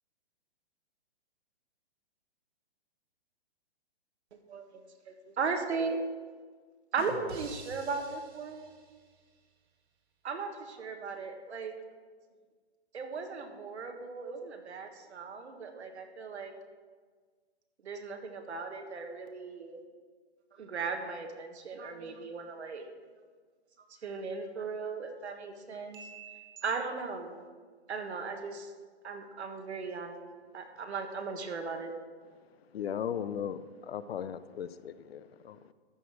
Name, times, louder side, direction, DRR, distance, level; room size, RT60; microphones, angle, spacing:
voice 1, 4.3-6.0 6.9-8.7 10.2-11.7 12.9-16.5 17.8-19.8 20.6-22.9 24.0-26.0 26.6-27.4 27.9-28.7 29.0-30.2 30.5-31.9, right 4 dB, 90° right, 4 dB, 1.6 m, -37 dB
voice 2, 7.3-8.1 8.4-9.1 25.9-26.6, right 3 dB, 20° right, 1 dB, 1.3 m, -48 dB
voice 3, 32.7-35.7, left 8 dB, 65° left, 15 dB, 0.5 m, -37 dB
13.0 x 5.1 x 6.1 m, 1.6 s
hypercardioid pair, 175°, 32 cm